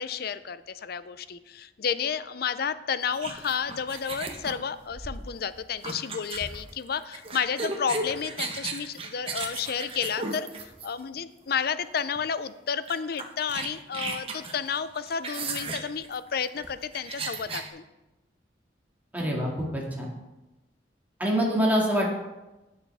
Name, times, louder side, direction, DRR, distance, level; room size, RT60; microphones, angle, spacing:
voice 1, 0.0-17.8, left 7 dB, 55° left, 14 dB, 0.5 m, -31 dB
sound 1, 3.1-11.2 12.0-12.2 12.5-12.6 12.9-17.7, right 3 dB, 30° right, 1.1 m, -35 dB
voice 2, 19.1-20.1 21.2-22.1, equal, 10° right, -3 dB, 2.1 m, -25 dB
16.0 x 6.6 x 3.4 m, 1.0 s
head